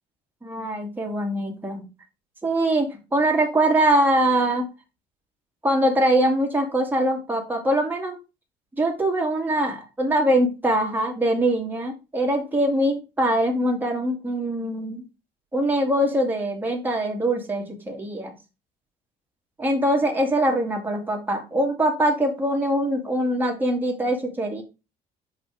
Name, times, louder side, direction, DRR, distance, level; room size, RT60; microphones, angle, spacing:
voice 1, 0.4-1.9 2.4-4.7 5.6-8.2 8.8-15.0 15.5-18.3 19.6-24.6, right 1 dB, 10° right, 0 dB, 1.9 m, -23 dB
5.2 x 4.1 x 4.9 m, 0.28 s
cardioid pair, 110°, 17 cm